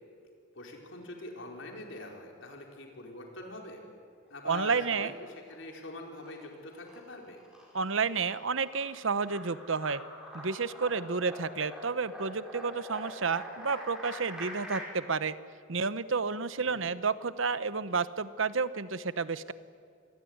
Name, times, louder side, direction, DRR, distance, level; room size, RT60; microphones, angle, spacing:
voice 1, 0.5-3.8 4.3-5.1 5.5-7.4 16.6-16.9, left 2 dB, 65° left, 2 dB, 4.4 m, -44 dB
voice 2, 4.4-5.1 7.7-10.0 10.3-15.3 15.7-19.5, right 5 dB, 70° right, 15 dB, 1.0 m, -31 dB
sound 1, 5.2-5.7 6.0-14.8, equal, 5° right, 5.9 m, -45 dB
27.0 x 21.0 x 9.5 m, 2.4 s
head